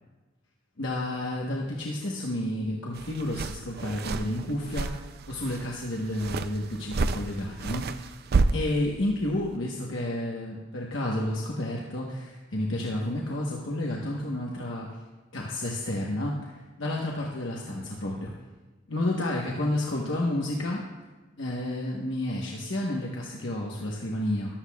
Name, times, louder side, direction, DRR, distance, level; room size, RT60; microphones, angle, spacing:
voice 1, 0.8-8.2 8.5-15.0 15.3-18.3 18.9-20.8 21.3-24.5, left 1 dB, 70° left, -2 dB, 1.2 m, -31 dB
sound 1, 2.9-9.6, right 3 dB, 55° right, 0.4 m, -31 dB
14.5 x 12.0 x 2.4 m, 1.2 s
head